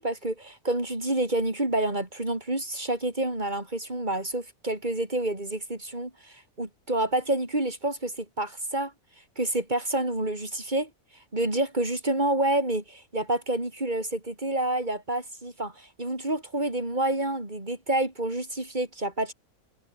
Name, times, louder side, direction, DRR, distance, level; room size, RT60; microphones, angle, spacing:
voice 1, 0.0-8.9 9.4-10.9 11.3-19.3, right 1 dB, 30° right, 5.1 m, -28 dB
omnidirectional pair, 1.6 m